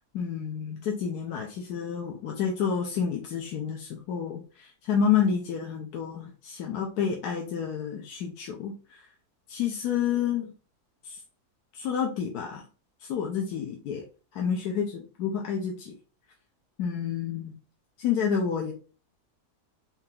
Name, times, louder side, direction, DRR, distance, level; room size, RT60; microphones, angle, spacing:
voice 1, 0.1-9.0 9.5-10.5 11.0-11.2 11.7-12.6 13.0-14.0 14.3-15.9 16.8-17.5 18.0-18.7, left 7 dB, 75° left, 1 dB, 1.2 m, -29 dB
4.4 x 2.8 x 3.6 m, 0.36 s
omnidirectional pair, 1.7 m